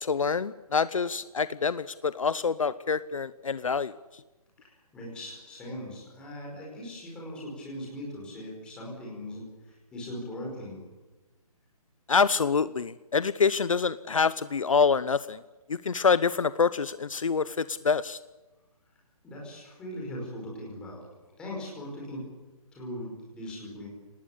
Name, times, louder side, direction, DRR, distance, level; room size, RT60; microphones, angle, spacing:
voice 1, 0.0-3.9 12.1-15.4 15.7-18.2, left 5 dB, 60° left, 16 dB, 0.8 m, -26 dB
voice 2, 4.6-10.9 19.2-21.0 21.4-22.3 22.7-23.9, left 1 dB, 5° left, -3 dB, 5.0 m, -40 dB
25.0 x 19.5 x 8.4 m, 1.1 s
hypercardioid pair, 180°, 19 cm